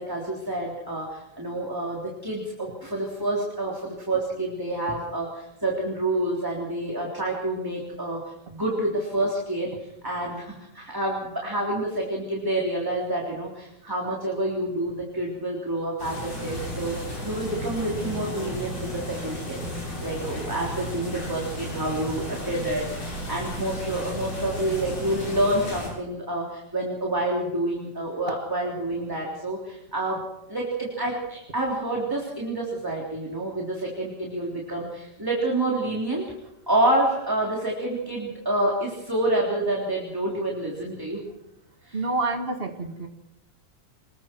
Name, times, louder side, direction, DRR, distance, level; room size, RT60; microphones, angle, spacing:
voice 1, 0.0-8.2 8.5-9.7 10.0-19.6 20.0-30.2 30.5-36.2 36.7-41.2 41.8-42.0, right 1 dB, 5° right, -3 dB, 3.3 m, -28 dB
sound 1, 16.0-25.9, equal, 50° left, 8.6 m, -34 dB
voice 2, 41.9-43.1, right 3 dB, 30° right, 5 dB, 1.2 m, -28 dB
26.5 x 21.5 x 4.6 m, 0.87 s
omnidirectional pair, 3.6 m